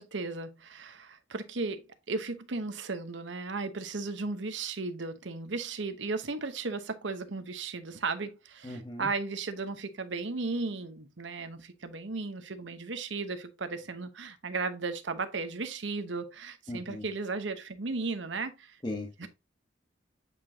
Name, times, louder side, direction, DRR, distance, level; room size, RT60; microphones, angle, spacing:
voice 1, 0.0-18.8 19.2-19.3, right 3 dB, 70° right, 0.9 m, -35 dB
voice 2, 8.6-9.1 16.7-17.1 18.8-19.3, left 1 dB, 20° left, 1.2 m, -38 dB
8.2 x 4.9 x 2.7 m
head